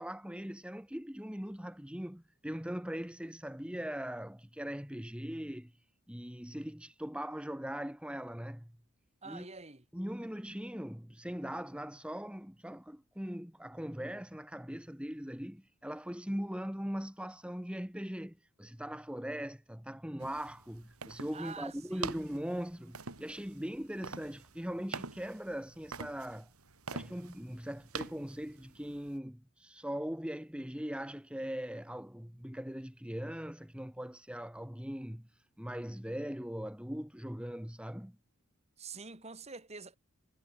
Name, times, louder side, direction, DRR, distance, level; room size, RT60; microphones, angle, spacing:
voice 1, 0.0-5.7 6.1-8.7 9.3-9.5 9.9-26.5 26.9-35.2 35.6-38.1, equal, 5° right, 1.3 m, -40 dB
voice 2, 9.2-9.8 21.3-22.1 38.8-40.0, right 4 dB, 30° right, 2.9 m, -46 dB
sound 1, 20.2-29.2, right 4 dB, 80° right, 3.0 m, -46 dB
head